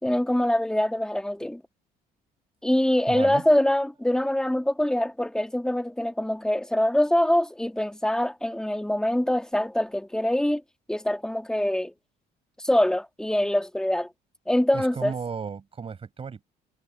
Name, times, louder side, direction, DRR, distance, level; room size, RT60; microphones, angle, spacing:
voice 1, 0.0-1.6 2.6-10.6 10.9-11.9 12.6-14.1 14.5-15.1, left 1 dB, 5° left, 1.9 m, -24 dB
voice 2, 3.1-3.4 14.7-16.5, right 6 dB, 35° right, 5.2 m, -34 dB
cardioid pair, 110°, 17 cm